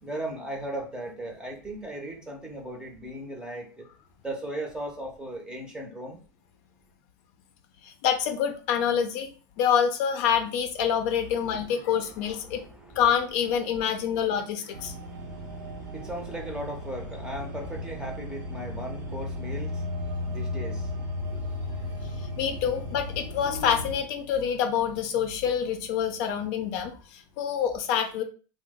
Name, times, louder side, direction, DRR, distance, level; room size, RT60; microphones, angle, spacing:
voice 1, 0.0-3.7 4.2-6.2 11.3-13.0 13.6-22.2, right 1 dB, 5° right, 1 dB, 0.7 m, -38 dB
voice 2, 7.8-9.3 9.6-12.6 13.0-14.9 22.4-28.2, left 8 dB, 55° left, 6 dB, 0.5 m, -26 dB
sound 1, 14.7-24.0, left 1 dB, 75° right, 1.0 m, -35 dB
3.0 x 2.0 x 3.5 m, 0.37 s
supercardioid pair, 140°, 11 cm